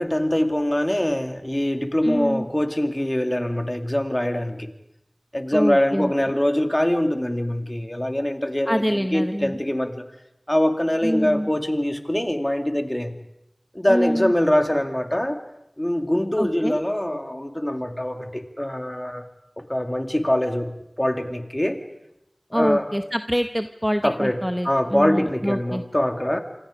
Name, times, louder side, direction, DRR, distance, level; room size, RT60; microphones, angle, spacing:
voice 1, 0.0-4.7 5.3-10.0 10.5-13.2 13.7-15.4 15.8-19.3 19.6-21.8 22.5-22.9 24.0-26.4, left 1 dB, 25° left, 6 dB, 2.3 m, -23 dB
voice 2, 2.0-2.5 5.5-6.1 8.7-9.6 11.0-11.5 13.9-14.3 16.4-16.8 22.5-25.8, equal, ahead, 7 dB, 1.0 m, -25 dB
27.5 x 25.5 x 5.1 m, 0.84 s
wide cardioid pair, 40°, 0 cm